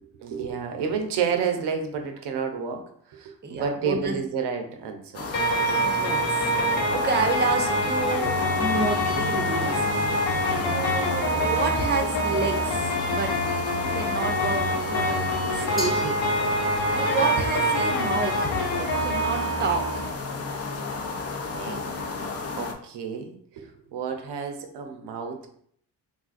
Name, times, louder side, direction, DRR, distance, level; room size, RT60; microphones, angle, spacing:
voice 1, 0.2-2.8 3.1-5.3 21.5-21.9 22.6-25.5, right 6 dB, 70° right, 5 dB, 0.7 m, -30 dB
voice 2, 3.4-4.2 5.8-6.5 6.9-9.9 10.6-13.4 13.9-15.2 15.5-16.2 16.9-20.1, right 4 dB, 25° right, 4 dB, 0.6 m, -29 dB
sound 1, 5.1-22.7, left 4 dB, 35° left, 0.6 m, -33 dB
sound 2, 5.3-20.1, equal, 85° left, 1.0 m, -26 dB
Glass, 15.8-17.0, equal, ahead, 1.1 m, -37 dB
3.6 x 2.5 x 2.5 m, 0.64 s
supercardioid pair, 50°, 42 cm